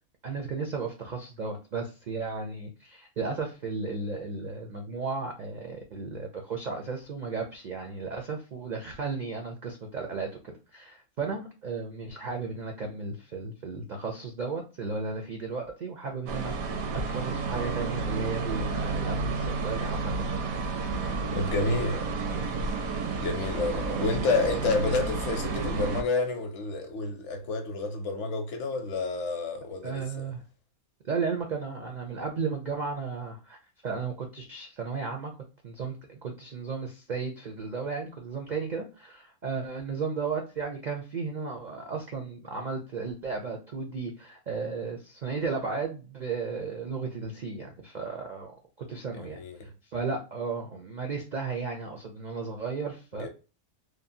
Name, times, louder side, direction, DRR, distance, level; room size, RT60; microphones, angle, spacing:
voice 1, 0.2-16.8 17.0-20.4 21.0-22.0 23.6-24.1 29.8-30.4 31.0-33.6 33.8-35.3 35.6-53.3, right 4 dB, 65° right, 0.4 m, -34 dB
sound 1, 16.3-26.0, right 4 dB, 80° right, 1.0 m, -31 dB
voice 2, 21.3-21.9 23.2-30.3 49.2-49.7 53.2-53.3, left 3 dB, 65° left, 0.9 m, -29 dB
3.0 x 2.1 x 2.5 m
omnidirectional pair, 1.5 m